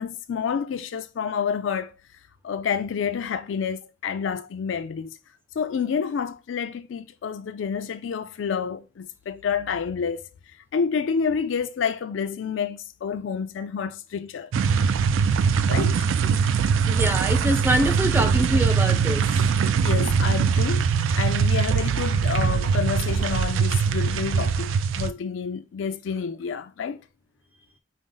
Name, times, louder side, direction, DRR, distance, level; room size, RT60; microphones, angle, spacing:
voice 1, 0.0-2.0 2.4-5.2 5.6-10.2 10.7-14.5 15.7-16.1 19.8-27.0, left 6 dB, 80° left, 0.4 m, -29 dB
sound 1, 14.5-25.1, right 6 dB, 85° right, 0.3 m, -22 dB
voice 2, 16.9-19.2, right 1 dB, 10° right, 0.5 m, -24 dB
5.0 x 2.0 x 3.8 m
head